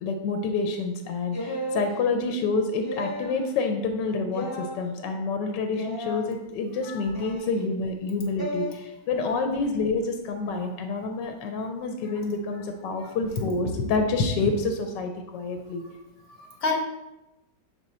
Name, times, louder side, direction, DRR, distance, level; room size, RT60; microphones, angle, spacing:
voice 1, 0.0-15.8, left 3 dB, 80° left, 5 dB, 1.3 m, -28 dB
sound 1, 1.3-1.9 2.8-3.4 4.3-4.8 5.7-6.2 7.1-7.6 8.4-8.7, equal, 35° left, 0.3 m, -33 dB
voice 2, 16.4-16.7, left 4 dB, 55° left, 1 dB, 1.3 m, -30 dB
6.8 x 3.9 x 4.2 m, 0.95 s
omnidirectional pair, 2.0 m